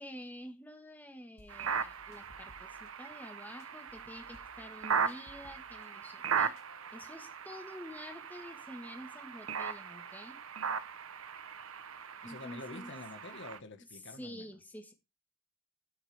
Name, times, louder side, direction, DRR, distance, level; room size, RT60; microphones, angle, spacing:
voice 1, 0.0-6.5 6.9-10.4 12.2-12.9 14.0-14.9, left 1 dB, 10° left, 1.5 m, -48 dB
sound 1, 1.4-2.9 3.6-5.9 6.2-7.2, left 2 dB, 85° left, 2.0 m, -60 dB
sound 2, 1.5-13.6, right 6 dB, 75° right, 0.9 m, -38 dB
voice 2, 12.2-14.5, left 2 dB, 60° left, 1.6 m, -47 dB
12.5 x 9.4 x 3.5 m
head